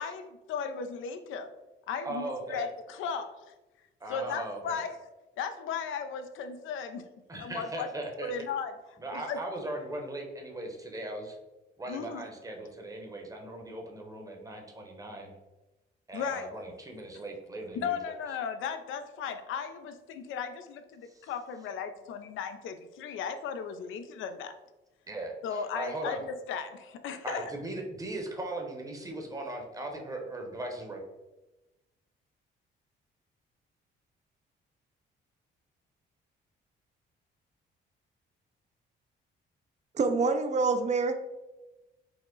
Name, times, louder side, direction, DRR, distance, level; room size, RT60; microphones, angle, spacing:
voice 1, 0.0-1.5 1.9-3.5 4.1-5.0 5.4-7.1 7.4-7.9 8.2-8.7 9.1-9.4 11.9-12.2 16.1-16.5 17.7-24.5 25.4-27.4, left 6 dB, 80° left, 8 dB, 0.4 m, -36 dB
voice 2, 2.0-2.7 4.0-4.8 7.3-8.3 9.0-11.4 11.8-15.3 16.1-18.1 21.1-21.3 25.1-26.2 27.2-31.0, right 1 dB, 15° right, 2 dB, 0.8 m, -38 dB
voice 3, 39.9-41.1, right 4 dB, 35° right, 8 dB, 0.4 m, -26 dB
4.7 x 2.0 x 3.7 m, 1.1 s
cardioid pair, 90°, 20 cm